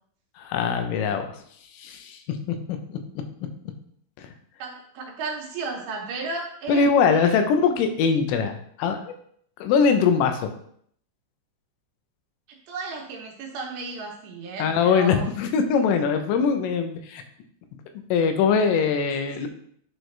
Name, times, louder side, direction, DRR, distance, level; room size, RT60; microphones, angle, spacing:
voice 1, 0.4-1.3 1.7-3.0 4.2-4.3 6.7-9.1 9.6-10.5 14.6-17.2 18.1-19.5, left 6 dB, 90° left, 6 dB, 3.4 m, -22 dB
voice 2, 4.6-7.4 12.7-15.3, right 3 dB, 70° right, 0 dB, 3.0 m, -34 dB
10.5 x 4.8 x 3.3 m, 0.64 s
omnidirectional pair, 5.6 m